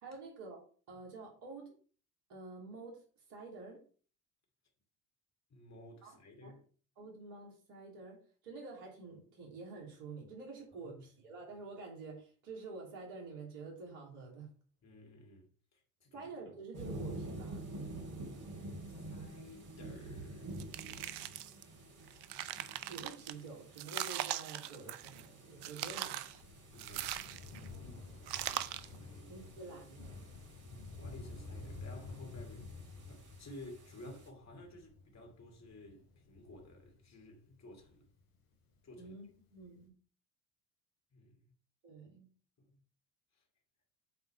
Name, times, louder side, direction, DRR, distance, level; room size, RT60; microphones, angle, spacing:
voice 1, 0.0-0.6 0.9-1.7 2.3-3.0 3.3-3.8 6.0-6.5 7.0-14.5 16.1-17.7 22.9-26.4 29.3-30.2 39.0-39.3 39.5-39.9 41.8-42.3, right 3 dB, 75° right, 3.2 m, -48 dB
voice 2, 5.5-6.6 10.7-11.0 14.8-16.6 18.4-20.6 20.9-21.2 26.7-27.5 28.4-29.5 31.0-38.1 38.8-39.1 41.1-41.5 42.6-42.8 43.3-43.4, left 1 dB, 35° left, 2.5 m, -54 dB
sound 1, 16.7-34.3, right 2 dB, 40° right, 2.9 m, -49 dB
sound 2, 20.6-21.6 22.1-23.3 23.8-25.3 25.6-26.4 26.8-27.7 28.3-28.9, right 13 dB, 60° right, 0.7 m, -40 dB
Thunder, 25.8-38.7 39.6-39.7, left 3 dB, 70° left, 2.6 m, -51 dB
8.1 x 3.9 x 5.6 m
hypercardioid pair, 60°, 45 cm